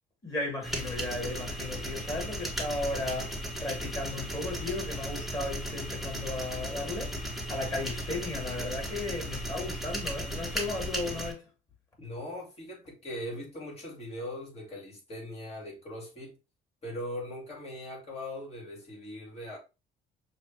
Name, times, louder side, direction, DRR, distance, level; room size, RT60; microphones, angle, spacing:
voice 1, 0.2-11.5, left 2 dB, 20° left, 2.3 m, -35 dB
sound 1, 0.6-11.3, equal, ahead, 1.2 m, -36 dB
voice 2, 12.0-16.4 16.8-19.6, left 1 dB, 35° left, 2.3 m, -40 dB
6.3 x 2.3 x 2.8 m
cardioid pair, 110°, 17 cm